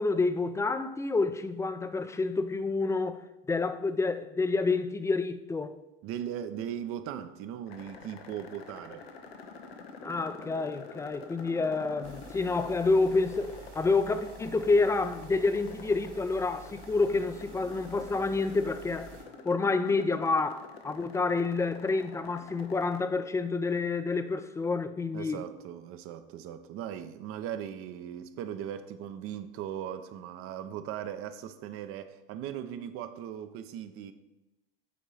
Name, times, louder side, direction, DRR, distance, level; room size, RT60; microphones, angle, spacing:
voice 1, 0.0-3.2 3.5-5.8 10.0-19.2 19.4-25.4, left 3 dB, 10° left, 0.4 m, -28 dB
voice 2, 6.0-9.1 25.1-34.1, right 10 dB, 45° right, 0.7 m, -38 dB
sound 1, 7.7-23.0, left 5 dB, 85° left, 0.9 m, -48 dB
sound 2, 12.0-19.2, right 7 dB, 65° right, 2.5 m, -50 dB
8.0 x 3.8 x 4.9 m
hypercardioid pair, 90°, 30 cm